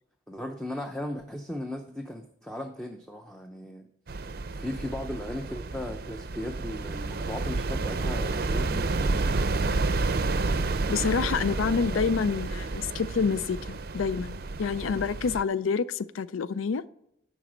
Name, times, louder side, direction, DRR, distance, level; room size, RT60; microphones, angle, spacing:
voice 1, 0.3-3.9 4.5-9.3 11.1-12.0, left 1 dB, 5° left, 0.5 m, -37 dB
sound 1, 4.1-15.4, right 3 dB, 50° right, 0.5 m, -30 dB
voice 2, 10.9-16.8, left 5 dB, 90° left, 0.4 m, -28 dB
11.0 x 4.1 x 7.6 m
head